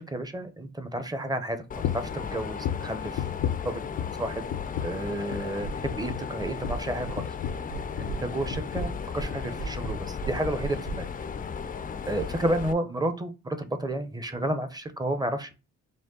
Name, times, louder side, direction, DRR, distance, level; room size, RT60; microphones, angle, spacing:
voice 1, 0.0-1.6 2.1-3.2 3.6-3.8 4.2-4.4 4.8-7.2 8.0-11.1 12.1-15.5, right 1 dB, 15° right, 9 dB, 0.6 m, -31 dB
Mechanisms, 1.7-12.7, left 6 dB, 30° left, 0.4 m, -36 dB
sound 1, 1.8-2.2 2.6-4.2 4.5-5.0 5.3-5.5 5.8-8.2 8.5-9.0 9.3-9.5 9.8-10.0, left 11 dB, 85° left, 0.6 m, -34 dB
sound 2, 5.6-6.1 6.4-7.2 7.4-8.2 8.5-11.0, right 5 dB, 70° right, 1.3 m, -35 dB
5.1 x 2.2 x 3.7 m, 0.29 s
cardioid pair, 90°, 30 cm